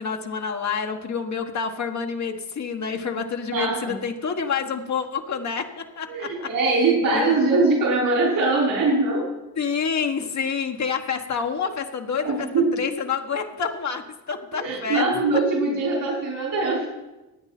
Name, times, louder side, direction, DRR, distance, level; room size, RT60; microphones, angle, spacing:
voice 1, 0.0-6.5 7.1-7.3 9.6-12.5 12.7-14.0 14.3-15.0, left 6 dB, 50° left, 3 dB, 1.5 m, -28 dB
voice 2, 3.5-4.0 6.1-9.3 12.2-12.8 14.5-16.9, right 3 dB, 75° right, -3 dB, 5.3 m, -22 dB
17.0 x 8.8 x 4.4 m, 1.0 s
supercardioid pair, 70°, 35 cm